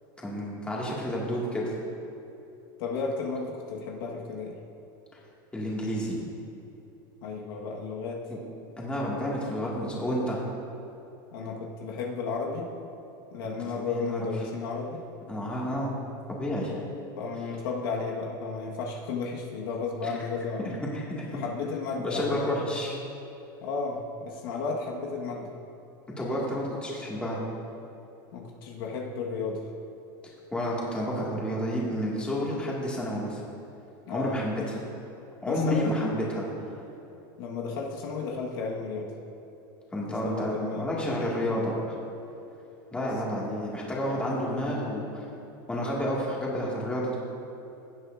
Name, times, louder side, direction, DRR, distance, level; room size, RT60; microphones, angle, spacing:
voice 1, 0.2-1.7 5.5-6.2 8.3-8.4 8.8-10.4 13.4-14.3 15.3-16.0 16.3-16.7 20.0-20.2 20.6-21.4 22.0-23.0 26.2-27.4 30.5-33.4 34.1-34.8 35.4-36.5 39.9-42.0 42.9-45.2 45.7-47.2, equal, 10° left, -5 dB, 1.9 m, -30 dB
voice 2, 2.8-4.5 7.2-8.2 11.3-12.7 13.3-15.1 17.1-20.7 21.3-22.5 23.6-25.5 28.3-29.7 34.1-34.4 35.5-35.9 37.4-39.1 40.0-40.9 42.9-43.1, left 4 dB, 80° left, -1 dB, 1.4 m, -33 dB
16.5 x 8.1 x 2.5 m, 2.9 s
supercardioid pair, 140°, 12 cm